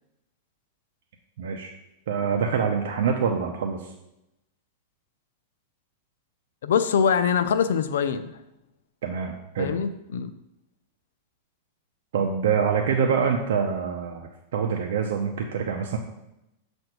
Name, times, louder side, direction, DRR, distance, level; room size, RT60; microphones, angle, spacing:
voice 1, 1.4-1.7 2.1-3.9 9.0-9.7 12.1-16.0, right 6 dB, 75° right, 2 dB, 0.7 m, -25 dB
voice 2, 6.6-8.4 9.6-10.3, left 7 dB, 85° left, 10 dB, 0.5 m, -23 dB
7.7 x 2.6 x 5.9 m, 0.88 s
supercardioid pair, 150°, 0 cm